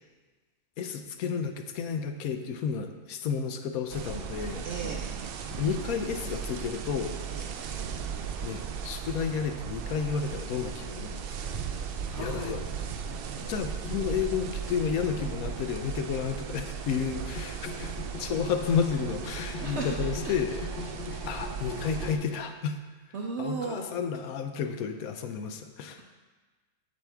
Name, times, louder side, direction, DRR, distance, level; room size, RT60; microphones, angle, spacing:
voice 1, 0.8-4.7 5.6-7.2 8.4-11.1 12.2-12.6 13.4-20.6 21.3-22.8 23.4-26.0, left 6 dB, 80° left, 6 dB, 1.1 m, -31 dB
sound 1, 3.9-22.2, right 7 dB, 90° right, 0.5 m, -37 dB
voice 2, 4.6-5.1 7.3-7.5 12.1-12.5 13.0-13.5 19.6-19.9 20.2-20.4 23.1-23.9, right 4 dB, 60° right, 0 dB, 0.8 m, -36 dB
sound 2, 9.8-16.1 16.4-22.4, left 4 dB, 45° left, 0.9 m, -43 dB
8.1 x 7.1 x 3.5 m, 1.3 s
omnidirectional pair, 1.5 m